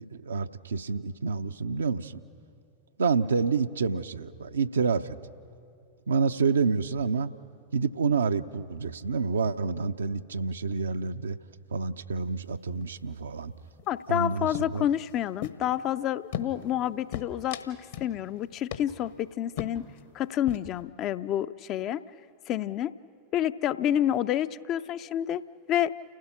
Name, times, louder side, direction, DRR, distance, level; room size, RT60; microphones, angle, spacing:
voice 1, 0.0-2.2 3.0-5.2 6.1-7.3 7.7-11.4 11.7-13.5 14.1-14.9, right 5 dB, 70° right, 10 dB, 0.6 m, -28 dB
sound 1, 12.2-12.5 12.8-13.2 13.4-14.2 14.5-15.9 16.3-16.8 17.1-18.2 18.4-18.5 18.7-19.1 19.6-20.0 20.3-20.8, left 9 dB, 60° left, 1.2 m, -38 dB
voice 2, 13.9-19.9 20.1-22.0 22.5-22.9 23.3-25.4 25.7-25.9, left 11 dB, 35° left, 13 dB, 0.5 m, -29 dB
29.5 x 16.0 x 6.0 m, 2.5 s
figure-of-eight pair, 90°, 0 cm